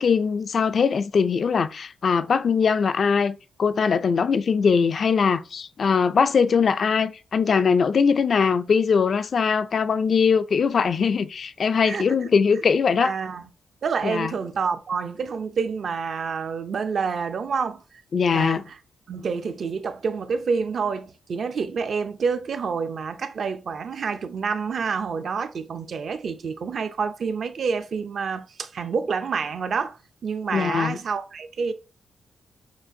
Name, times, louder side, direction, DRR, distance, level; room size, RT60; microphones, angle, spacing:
voice 1, 0.0-13.1 14.0-14.3 18.1-18.6 30.5-31.0, left 6 dB, 45° left, 0.3 m, -21 dB
voice 2, 11.9-12.3 13.0-13.4 13.8-17.8 18.3-18.8 19.1-30.0 30.2-31.7, right 5 dB, 50° right, 0.5 m, -28 dB
6.1 x 2.4 x 2.6 m
wide cardioid pair, 145°, 0 cm